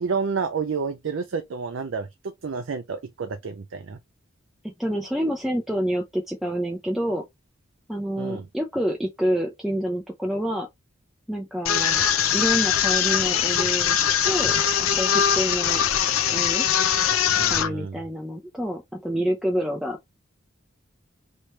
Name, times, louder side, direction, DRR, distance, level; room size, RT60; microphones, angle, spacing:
voice 1, 0.0-4.0 8.2-8.5 17.3-18.0, right 5 dB, 65° right, 0.5 m, -30 dB
voice 2, 4.6-7.2 7.9-10.7 11.3-12.0 12.3-14.0 14.2-15.8 16.3-16.7 17.5-20.0, equal, ahead, 0.5 m, -27 dB
sound 1, 11.6-17.7, left 8 dB, 90° left, 0.6 m, -22 dB
3.1 x 2.9 x 3.1 m
head